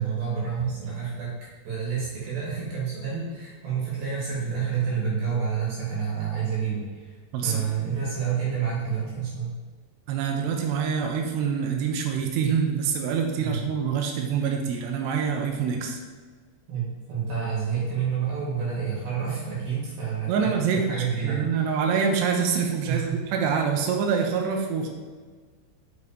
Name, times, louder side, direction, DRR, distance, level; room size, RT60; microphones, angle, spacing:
voice 1, 0.0-1.4 1.6-9.5 13.4-13.6 16.7-21.8 22.8-23.2, right 6 dB, 65° right, -6 dB, 3.3 m, -29 dB
voice 2, 10.1-16.0 20.3-24.9, right 6 dB, 80° right, 3 dB, 2.8 m, -26 dB
6.9 x 6.3 x 2.8 m, 1.5 s
omnidirectional pair, 5.0 m